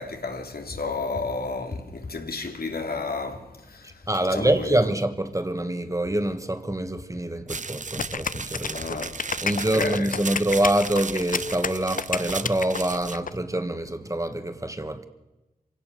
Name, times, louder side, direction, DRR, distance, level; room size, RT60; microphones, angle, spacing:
voice 1, 0.0-3.9 4.3-4.8 8.7-9.1 9.6-10.1, left 3 dB, 80° left, 2.7 m, -32 dB
voice 2, 3.8-9.0 9.4-15.1, right 1 dB, 20° right, 1.7 m, -26 dB
sound 1, 7.5-13.2, right 4 dB, 55° right, 0.8 m, -36 dB
sound 2, 8.0-13.3, left 5 dB, 60° left, 0.6 m, -30 dB
26.5 x 17.0 x 6.9 m
wide cardioid pair, 80°, 15 cm